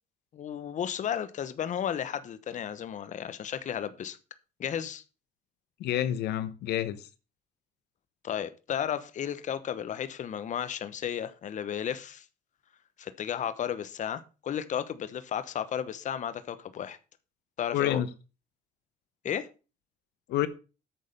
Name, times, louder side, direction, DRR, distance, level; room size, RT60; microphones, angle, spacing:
voice 1, 0.3-4.2 4.6-5.0 8.2-12.3 13.0-17.0 17.6-18.0 19.2-19.5, left 9 dB, 45° left, 1.0 m, -33 dB
voice 2, 5.8-7.0 17.7-18.1 20.3-20.5, left 12 dB, 80° left, 1.0 m, -28 dB
9.3 x 6.4 x 6.7 m
cardioid pair, 110°, 17 cm